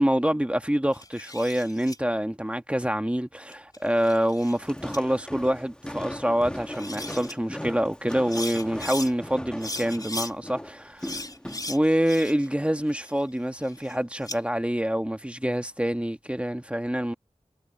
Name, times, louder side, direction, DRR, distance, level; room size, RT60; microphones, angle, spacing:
voice 1, 0.0-11.2 11.7-17.1, equal, 10° right, 1.3 m, -26 dB
sound 1, 0.9-2.0 3.5-4.6 4.9-5.0 6.4-6.5 6.7-7.3 8.1-9.1 9.6-10.3 11.0-12.5 12.9-14.4, left 2 dB, 30° left, 3.1 m, -37 dB
Walk footsteps, 4.5-11.8, equal, 5° left, 1.1 m, -38 dB
wide cardioid pair, 70°, 13 cm